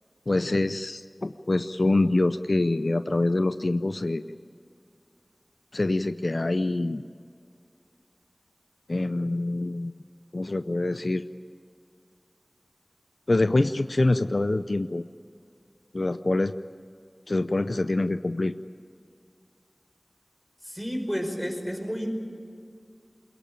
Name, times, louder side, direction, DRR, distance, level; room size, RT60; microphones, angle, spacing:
voice 1, 0.3-4.4 5.7-7.0 8.9-9.9 10.3-11.3 13.3-15.0 15.9-16.5 17.3-18.5, left 2 dB, 70° left, 10 dB, 0.6 m, -25 dB
voice 2, 20.6-22.1, equal, 5° left, 3 dB, 5.3 m, -31 dB
22.5 x 22.5 x 9.0 m, 2.4 s
wide cardioid pair, 40°, 0 cm